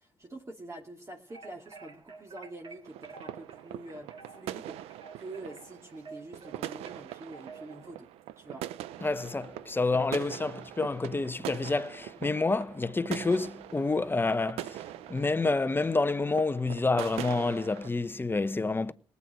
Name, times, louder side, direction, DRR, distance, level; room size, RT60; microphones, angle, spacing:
voice 1, 0.0-8.1 8.4-8.6, right 2 dB, 30° right, 2.4 m, -46 dB
sound 1, 1.3-7.9, right 4 dB, 55° right, 3.9 m, -51 dB
sound 2, 2.8-17.9, right 13 dB, 85° right, 0.6 m, -42 dB
voice 2, 9.0-14.8 15.1-18.9, left 3 dB, 20° left, 0.9 m, -28 dB
18.5 x 8.4 x 6.3 m
supercardioid pair, 65°, 10 cm